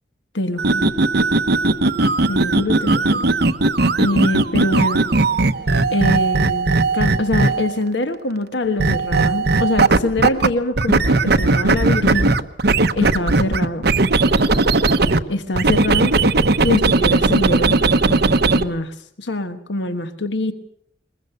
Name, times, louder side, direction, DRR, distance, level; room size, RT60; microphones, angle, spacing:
voice 1, 0.3-0.9 2.2-3.3 4.0-5.1 5.9-12.4 12.9-13.9 15.3-16.2 16.6-18.3 18.5-20.5, left 1 dB, 75° left, 9 dB, 1.4 m, -24 dB
sound 1, 0.6-7.8 8.8-10.5 10.8-15.2 15.5-18.6, right 3 dB, 65° right, 1.1 m, -17 dB
21.5 x 21.5 x 6.8 m, 0.67 s
head